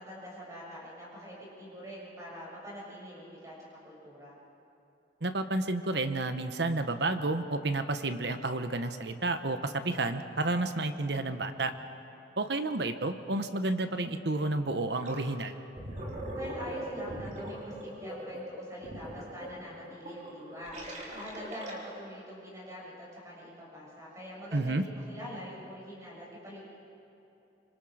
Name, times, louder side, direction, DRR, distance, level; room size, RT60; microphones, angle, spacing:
voice 1, 0.0-4.4 16.3-20.7 21.1-26.6, equal, 15° right, -5 dB, 7.1 m, -44 dB
voice 2, 5.2-11.7 12.4-15.6 24.5-24.8, right 2 dB, 65° right, 8 dB, 1.1 m, -31 dB
Gurgling, 15.0-15.3 15.6-22.1, right 1 dB, 40° right, 3.8 m, -41 dB
26.0 x 25.5 x 5.0 m, 2.9 s
head